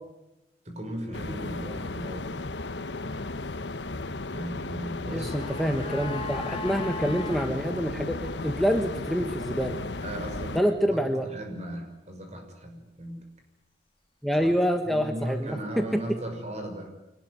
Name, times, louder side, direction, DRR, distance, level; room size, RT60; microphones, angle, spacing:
voice 1, 0.6-2.3 4.2-5.4 10.0-13.2 14.4-14.6 14.8-16.9, right 1 dB, 40° right, 4 dB, 6.2 m, -37 dB
sound 1, 1.1-10.6, left 2 dB, 80° left, 1.2 m, -35 dB
sound 2, 5.1-7.5 7.8-7.9, left 3 dB, 30° left, 3.4 m, -37 dB
voice 2, 5.1-9.8 10.5-11.3 14.2-16.0, equal, ahead, 5 dB, 1.3 m, -27 dB
25.5 x 19.5 x 9.7 m, 0.98 s
head